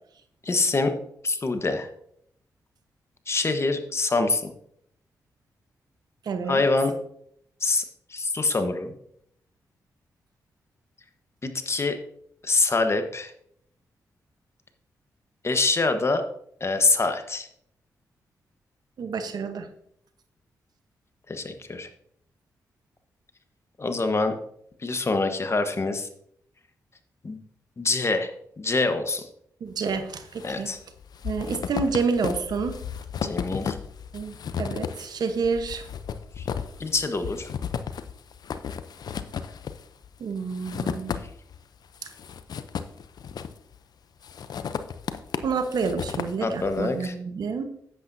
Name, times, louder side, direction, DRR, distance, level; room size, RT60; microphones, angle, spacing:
voice 1, 0.4-0.9 1.2-1.9 3.3-4.5 6.5-7.0 7.6-7.8 8.1-8.9 11.4-12.0 12.4-13.3 15.4-16.2 16.6-17.5 21.3-21.9 23.8-24.3 24.8-26.1 27.2-27.4 27.8-28.3 28.6-29.3 30.4-30.8 33.2-33.8 36.4-36.5 36.8-37.5 46.4-47.1, left 3 dB, 40° left, 8 dB, 1.1 m, -25 dB
voice 2, 6.3-6.6 19.0-19.7 29.6-30.7 31.2-32.8 34.1-35.8 40.2-41.2 45.4-47.6, right 5 dB, 70° right, 8 dB, 1.0 m, -28 dB
sound 1, 29.9-30.5 30.8-41.6 41.9-43.8 44.2-46.9, left 7 dB, 65° left, 0.6 m, -34 dB
10.0 x 8.5 x 2.7 m, 0.68 s
supercardioid pair, 55°, 7 cm